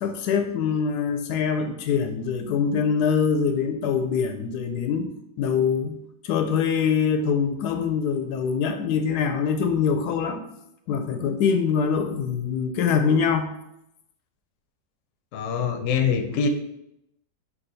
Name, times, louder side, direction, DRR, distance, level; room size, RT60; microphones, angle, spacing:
voice 1, 0.0-5.1 5.4-6.0 6.2-10.4 10.9-13.5, left 6 dB, 90° left, 6 dB, 1.1 m, -24 dB
voice 2, 15.3-16.5, left 6 dB, 65° left, 5 dB, 0.9 m, -24 dB
4.8 x 2.8 x 3.9 m, 0.81 s
omnidirectional pair, 1.7 m